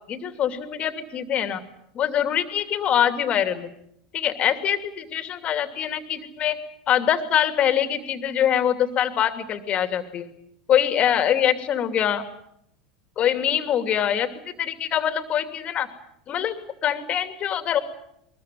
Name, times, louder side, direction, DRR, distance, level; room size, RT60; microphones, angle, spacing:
voice 1, 0.1-1.6 1.9-3.7 4.1-6.6 6.9-10.3 10.7-12.2 13.2-14.3 14.6-15.9 16.3-16.6 16.8-17.8, left 9 dB, 40° left, 8 dB, 2.8 m, -24 dB
23.0 x 22.0 x 9.3 m, 0.75 s
hypercardioid pair, 80°, 3 cm